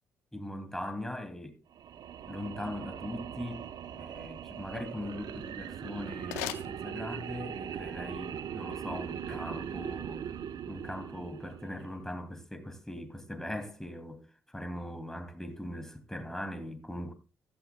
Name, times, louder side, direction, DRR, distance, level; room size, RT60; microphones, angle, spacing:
voice 1, 0.3-1.6 2.3-3.6 3.9-10.3 10.7-17.1, left 1 dB, 5° left, 2.5 m, -40 dB
sound 1, 1.7-12.0, right 8 dB, 60° right, 0.9 m, -40 dB
sound 2, 6.1-7.5, left 15 dB, 85° left, 0.6 m, -42 dB
15.5 x 12.5 x 2.2 m
hypercardioid pair, 45°, 8 cm